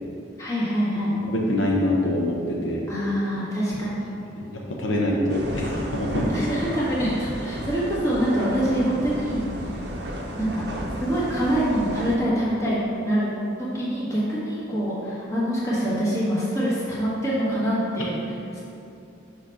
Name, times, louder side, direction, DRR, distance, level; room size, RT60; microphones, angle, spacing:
voice 1, 0.4-1.1 2.9-4.1 6.1-9.7 10.3-10.6 11.0-13.3 13.6-18.2 18.5-18.6, equal, 15° left, -9 dB, 1.5 m, -25 dB
voice 2, 1.3-2.8 4.4-6.3, left 1 dB, 80° left, -2 dB, 0.8 m, -25 dB
sound 1, 5.3-12.2, right 1 dB, 55° right, 0.7 m, -33 dB
6.1 x 3.3 x 5.5 m, 2.7 s
head